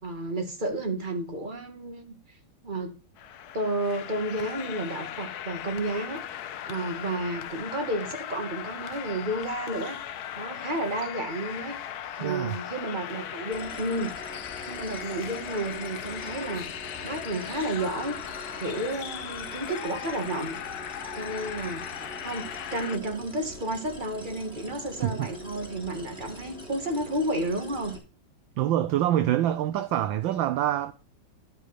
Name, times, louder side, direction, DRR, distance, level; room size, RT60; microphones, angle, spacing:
voice 1, 0.0-2.2 2.6-2.9 3.5-6.2 6.7-10.0 10.4-11.8 12.2-16.7 17.0-18.1 18.5-20.6 21.1-21.8 22.2-27.9, right 1 dB, 20° right, 2.2 m, -31 dB
sound 1, 3.2-23.0, left 10 dB, 70° left, 0.9 m, -38 dB
voice 2, 12.2-12.6 25.0-25.3 28.6-30.9, right 12 dB, 70° right, 1.3 m, -25 dB
sound 2, 13.5-28.0, right 1 dB, ahead, 3.4 m, -44 dB
12.5 x 5.6 x 6.0 m
omnidirectional pair, 2.4 m